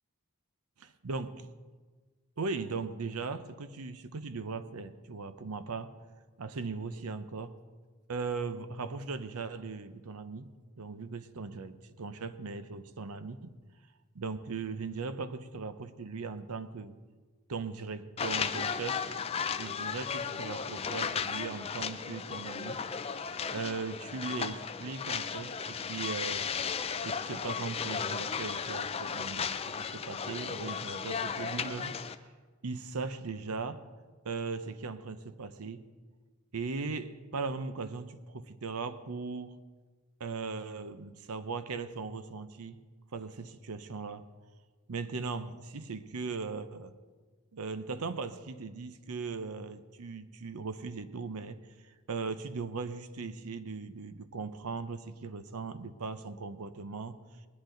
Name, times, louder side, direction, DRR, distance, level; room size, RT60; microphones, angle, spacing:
voice 1, 2.4-6.0 6.4-7.6 8.1-13.6 14.1-16.9 17.5-19.1 19.6-22.8 23.5-32.1 32.6-33.9 34.2-35.8 36.5-39.6 40.2-42.8 43.1-44.3 44.9-46.9 47.5-57.2, right 4 dB, 85° right, 12 dB, 0.7 m, -38 dB
sound 1, 18.2-32.2, left 6 dB, 25° left, 0.4 m, -35 dB
19.5 x 10.5 x 3.9 m, 1.4 s
head